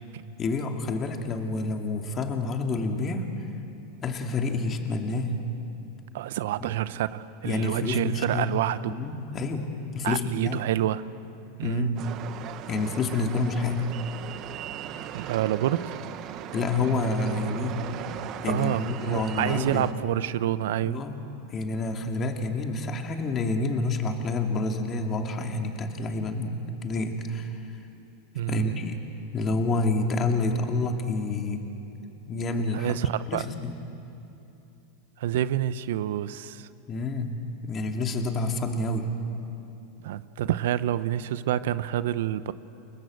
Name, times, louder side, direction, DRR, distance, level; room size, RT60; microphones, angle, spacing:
voice 1, 0.4-3.3 4.0-5.4 6.6-6.7 7.4-8.5 8.9-10.6 11.6-12.0 12.7-13.9 16.5-17.8 18.4-19.9 20.8-21.2 21.5-27.6 28.5-29.0 29.3-31.6 32.3-33.0 33.3-33.8 36.9-39.1, left 3 dB, 30° left, 4 dB, 2.5 m, -28 dB
voice 2, 6.1-9.0 10.0-11.1 11.6-11.9 15.1-16.0 18.5-21.0 28.3-28.7 32.7-33.4 35.2-36.7 40.0-42.5, right 12 dB, 75° right, 15 dB, 0.8 m, -28 dB
sound 1, 12.0-19.9, right 10 dB, 45° right, 1.4 m, -38 dB
29.5 x 19.0 x 7.9 m, 2.8 s
hypercardioid pair, 110°, 0 cm